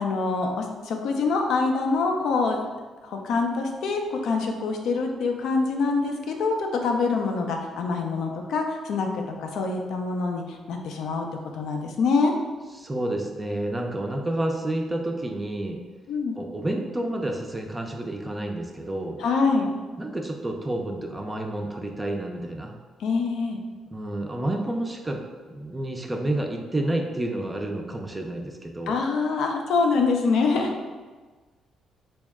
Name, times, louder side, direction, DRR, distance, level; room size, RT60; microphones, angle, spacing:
voice 1, 0.0-2.6 3.0-11.3 11.6-12.3 16.1-16.3 19.2-19.7 23.0-23.6 28.9-30.7, left 4 dB, 80° left, 3 dB, 0.5 m, -25 dB
voice 2, 12.8-15.8 16.4-19.2 20.0-22.7 23.9-29.0, right 1 dB, 15° right, 2 dB, 0.4 m, -30 dB
4.0 x 2.1 x 3.5 m, 1.4 s
cardioid pair, 90°, 0 cm